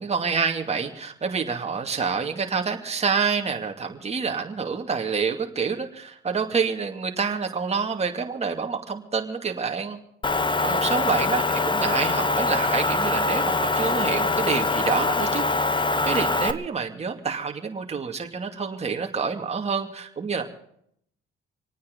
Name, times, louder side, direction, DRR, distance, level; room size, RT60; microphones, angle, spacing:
voice 1, 0.0-10.0 10.6-15.4 16.0-20.4, right 5 dB, 30° right, 3 dB, 2.6 m, -27 dB
Motor vehicle (road) / Engine, 10.2-16.5, left 3 dB, 25° left, 1.2 m, -23 dB
26.5 x 9.4 x 5.4 m, 0.68 s
cardioid pair, 90°, 20 cm